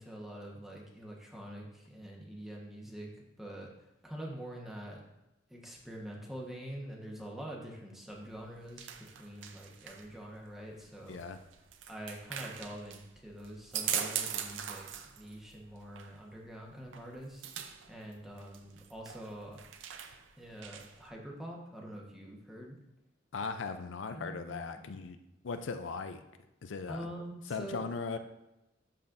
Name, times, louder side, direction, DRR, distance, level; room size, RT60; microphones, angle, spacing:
voice 1, 0.0-3.1 3.4-3.7 4.0-5.0 5.5-8.9 9.2-11.2 11.9-14.9 15.2-19.6 20.4-22.8 24.1-24.6 26.9-27.9, right 1 dB, ahead, -2 dB, 1.2 m, -45 dB
sound 1, 8.1-21.1, right 9 dB, 80° right, 0.6 m, -42 dB
voice 2, 23.3-25.2 25.4-26.2 26.6-27.0 27.5-28.2, left 4 dB, 75° left, 8 dB, 0.5 m, -38 dB
12.5 x 4.2 x 2.6 m, 0.93 s
head